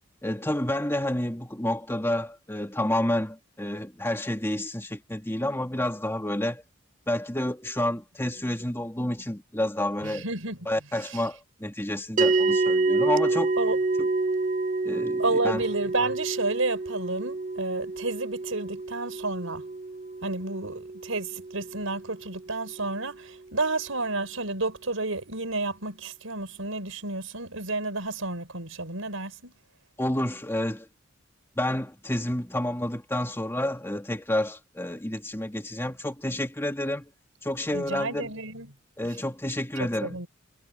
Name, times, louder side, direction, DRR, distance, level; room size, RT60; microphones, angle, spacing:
voice 1, 0.2-6.6 7.1-10.2 10.7-13.5 14.8-15.6 30.0-30.9 31.6-37.1 37.4-38.3 39.0-40.2, left 1 dB, 10° left, 2.2 m, -29 dB
voice 2, 10.0-10.6 11.0-11.2 13.6-13.8 15.2-19.6 20.2-29.6 37.7-38.7 40.0-40.3, right 3 dB, 80° right, 5.1 m, -31 dB
sound 1, 12.2-22.7, right 3 dB, 40° right, 0.9 m, -28 dB
head